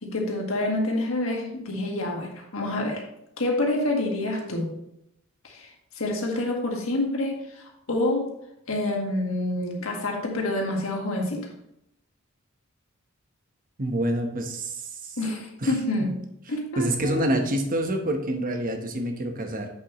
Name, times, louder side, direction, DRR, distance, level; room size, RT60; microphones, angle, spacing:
voice 1, 0.0-3.0 3.4-4.7 5.4-5.7 5.9-8.3 8.7-11.5 15.2-16.1 16.5-17.3, left 1 dB, 70° left, 0 dB, 1.7 m, -27 dB
voice 2, 13.8-15.2 15.6-15.7 16.8-19.7, right 1 dB, 40° right, 5 dB, 1.0 m, -27 dB
8.0 x 6.8 x 3.0 m, 0.78 s
head